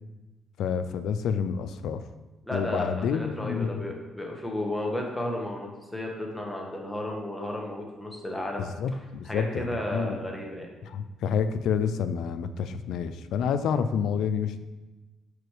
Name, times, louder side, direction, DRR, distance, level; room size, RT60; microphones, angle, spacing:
voice 1, 0.6-2.0 2.5-3.8 8.6-10.2 10.9-14.6, left 7 dB, 80° left, 11 dB, 0.4 m, -29 dB
voice 2, 2.5-8.7 9.2-10.7, left 1 dB, 5° left, -1 dB, 1.3 m, -33 dB
5.0 x 4.8 x 4.8 m, 1.2 s
cardioid pair, 90°, 0 cm